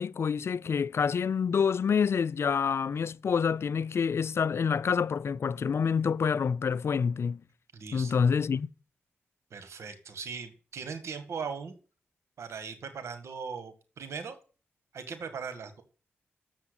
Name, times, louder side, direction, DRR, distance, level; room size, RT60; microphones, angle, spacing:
voice 1, 0.0-7.4 7.9-8.7, left 6 dB, 65° left, 0.5 m, -27 dB
voice 2, 7.7-8.2 9.5-11.7 12.4-14.4 14.9-15.8, right 5 dB, 80° right, 1.8 m, -39 dB
7.2 x 7.1 x 8.2 m
cardioid pair, 55°, 5 cm